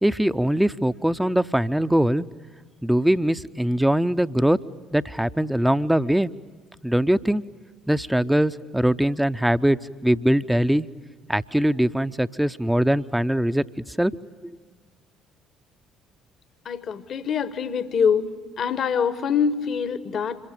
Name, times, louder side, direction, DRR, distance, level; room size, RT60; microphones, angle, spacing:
voice 1, 0.0-2.2 2.8-4.6 4.9-6.3 6.8-7.4 7.9-10.9 11.3-13.6 14.0-14.1, right 1 dB, 5° right, 13 dB, 0.7 m, -21 dB
voice 2, 16.7-18.3 18.6-20.4, left 7 dB, 45° left, 14 dB, 1.1 m, -24 dB
26.5 x 23.0 x 7.8 m, 1.4 s
figure-of-eight pair, 50°, 0 cm